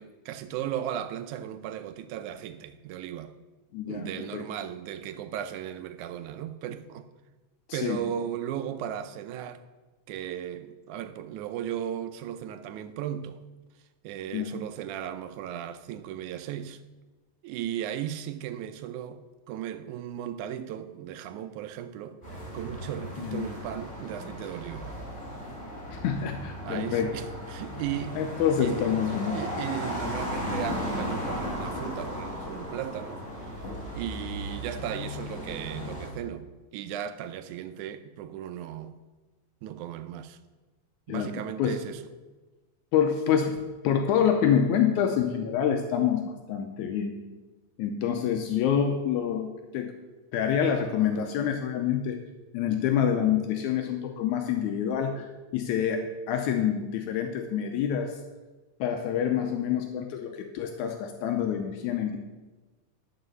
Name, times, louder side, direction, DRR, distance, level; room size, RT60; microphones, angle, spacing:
voice 1, 0.0-3.3 3.9-7.1 7.7-9.6 10.1-13.4 14.0-16.8 17.4-22.2 22.5-25.0 26.6-28.2 28.6-28.9 29.3-33.7 33.9-39.0 39.6-40.4 41.1-42.0, right 10 dB, 85° right, 2.1 m, -36 dB
voice 2, 3.7-4.4 7.7-8.0 14.3-14.6 23.2-23.5 25.9-27.1 28.2-29.4 41.1-41.8 42.9-47.2 47.8-49.9 50.3-52.2 52.5-58.2 58.8-62.2, left 8 dB, 80° left, 2.1 m, -27 dB
sound 1, 22.2-36.1, equal, 15° left, 3.7 m, -36 dB
12.0 x 4.9 x 6.7 m
omnidirectional pair, 3.4 m